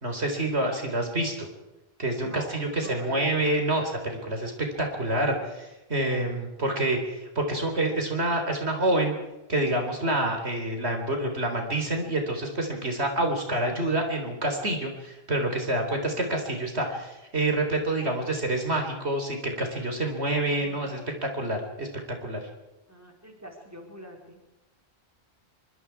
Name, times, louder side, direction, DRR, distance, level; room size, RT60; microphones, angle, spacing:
voice 1, 0.0-1.5 2.0-9.1 9.5-21.9 22.2-22.4, right 1 dB, 70° right, 4 dB, 4.3 m, -27 dB
voice 2, 2.2-2.5 2.8-3.3 20.4-21.2 22.9-24.4, equal, 15° right, 1 dB, 4.3 m, -44 dB
25.0 x 24.0 x 4.8 m, 1.0 s
omnidirectional pair, 1.1 m